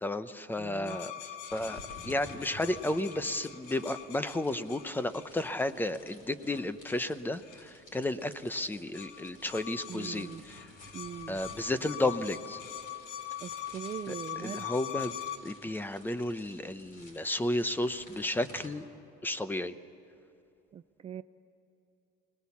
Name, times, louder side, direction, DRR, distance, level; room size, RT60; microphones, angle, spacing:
voice 1, 0.0-1.1 1.5-10.6 11.3-12.6 14.1-15.2 15.4-18.8 19.2-19.7, left 1 dB, 10° left, 13 dB, 0.7 m, -33 dB
voice 2, 0.6-1.0 9.9-10.4 10.9-11.4 13.4-14.7 20.7-21.2, right 9 dB, 30° right, 11 dB, 0.4 m, -41 dB
sound 1, 0.9-5.7 6.5-7.1 7.4-7.6 8.5-8.6 8.9-15.4, left 11 dB, 90° left, 1.8 m, -43 dB
sound 2, 1.5-18.7, left 1 dB, 45° left, 6.4 m, -54 dB
24.5 x 19.5 x 7.1 m, 2.9 s
cardioid pair, 145°, 21 cm